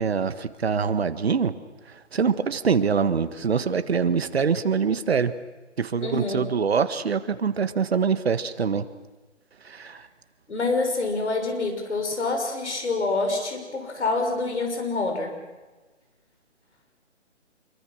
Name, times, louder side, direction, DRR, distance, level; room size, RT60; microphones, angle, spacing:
voice 1, 0.0-1.5 2.1-5.3 5.8-8.8 9.7-10.0, right 6 dB, 55° right, 11 dB, 1.7 m, -24 dB
voice 2, 6.0-6.5 10.5-15.4, left 3 dB, 70° left, 4 dB, 6.3 m, -26 dB
26.5 x 23.5 x 6.4 m, 1.2 s
hypercardioid pair, 165°, 36 cm